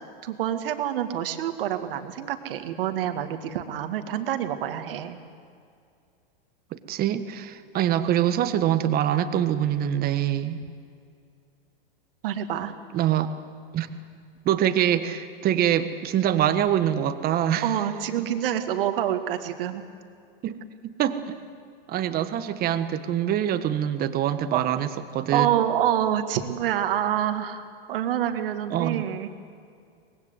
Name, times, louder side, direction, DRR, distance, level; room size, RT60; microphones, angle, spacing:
voice 1, 0.2-5.2 12.2-12.7 17.6-19.8 24.5-24.6 25.3-29.3, right 10 dB, 70° right, 7 dB, 2.2 m, -27 dB
voice 2, 6.7-10.6 12.9-13.3 13.7-13.9 14.4-17.8 20.4-20.6 20.8-21.4 21.9-25.5 28.7-29.1, right 10 dB, 30° right, 10 dB, 1.5 m, -24 dB
24.0 x 20.5 x 8.2 m, 2.4 s
hypercardioid pair, 125°, 29 cm